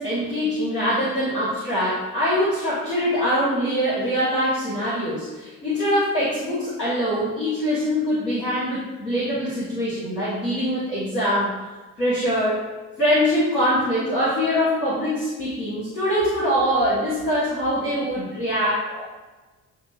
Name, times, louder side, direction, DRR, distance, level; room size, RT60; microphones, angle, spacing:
voice 1, 0.0-11.6 12.0-12.6 13.0-19.0, equal, 85° left, -10 dB, 1.2 m, -23 dB
7.8 x 2.9 x 2.3 m, 1.2 s
figure-of-eight pair, 40°, 48 cm